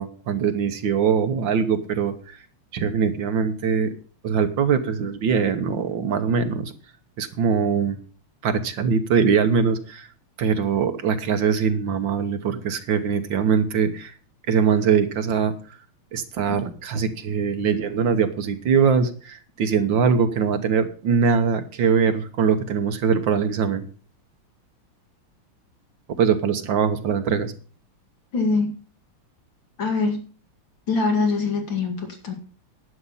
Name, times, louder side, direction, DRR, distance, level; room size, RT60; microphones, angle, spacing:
voice 1, 0.0-2.4 2.7-3.9 4.2-6.7 7.2-8.0 8.4-10.1 10.4-14.1 14.5-15.5 16.1-23.9 26.2-27.5, right 6 dB, 65° right, 8 dB, 1.8 m, -22 dB
voice 2, 28.3-28.7 29.8-30.2 30.9-32.3, left 3 dB, 60° left, 3 dB, 2.9 m, -23 dB
11.0 x 8.8 x 5.6 m, 0.39 s
omnidirectional pair, 2.4 m